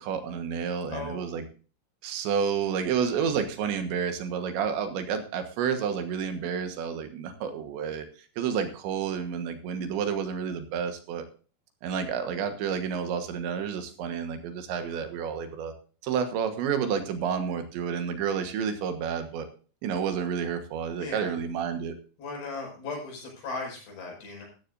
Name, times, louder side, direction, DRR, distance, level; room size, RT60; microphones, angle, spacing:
voice 1, 0.0-1.4 2.0-8.1 8.4-11.2 11.8-15.7 16.0-19.5 19.8-22.0, right 7 dB, 80° right, 7 dB, 3.7 m, -30 dB
voice 2, 0.9-1.4 21.0-21.4 22.2-24.5, left 3 dB, 65° left, 0 dB, 7.7 m, -37 dB
15.0 x 13.0 x 2.6 m, 0.37 s
omnidirectional pair, 5.2 m